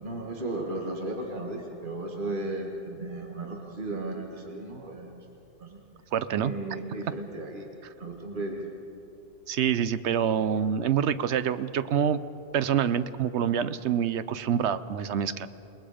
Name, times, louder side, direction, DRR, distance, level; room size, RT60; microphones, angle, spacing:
voice 1, 0.0-5.2 5.6-5.8 6.3-7.7 8.0-8.8, right 2 dB, 50° right, 1 dB, 1.9 m, -35 dB
voice 2, 6.1-6.5 9.5-12.2 12.5-15.5, right 8 dB, 85° right, 13 dB, 1.0 m, -26 dB
28.5 x 20.0 x 5.1 m, 2.9 s
omnidirectional pair, 1.1 m